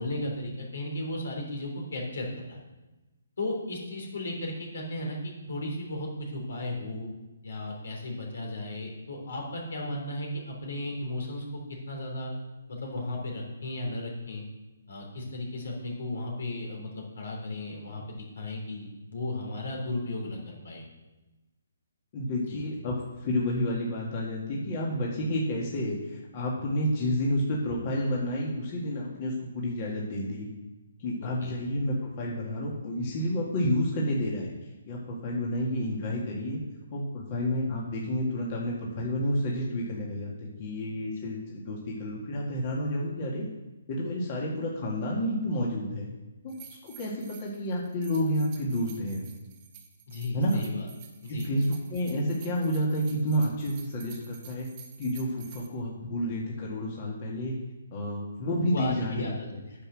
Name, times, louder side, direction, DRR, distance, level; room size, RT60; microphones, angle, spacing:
voice 1, 0.0-2.6 3.4-7.1 7.4-11.6 11.9-12.3 12.7-14.4 14.9-20.8 22.5-22.6 31.4-31.5 50.1-50.9 51.2-51.5 58.4-59.8, left 1 dB, 70° left, 0 dB, 3.4 m, -35 dB
voice 2, 22.1-30.5 31.0-34.5 34.9-36.6 36.9-43.5 43.9-46.1 46.4-49.3 50.3-50.6 51.3-54.7 55.0-57.5 57.9-59.6, equal, 35° left, -3 dB, 2.0 m, -30 dB
sound 1, 46.5-55.7, right 9 dB, 30° right, 1.1 m, -51 dB
9.6 x 6.1 x 6.4 m, 1.1 s
hypercardioid pair, 150°, 0 cm